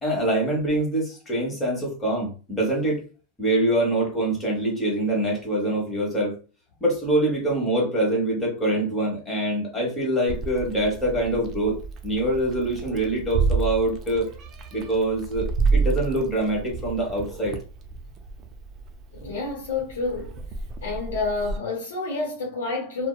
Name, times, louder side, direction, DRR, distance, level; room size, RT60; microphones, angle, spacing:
voice 1, 0.0-3.0 3.4-6.4 6.8-14.3 14.7-17.6, right 1 dB, 20° left, 1.2 m, -24 dB
Meow, 10.3-21.6, right 4 dB, 35° right, 0.5 m, -30 dB
voice 2, 19.1-20.3 20.8-23.1, left 3 dB, 85° left, 0.7 m, -29 dB
2.7 x 2.0 x 2.3 m
hypercardioid pair, 120°, 0 cm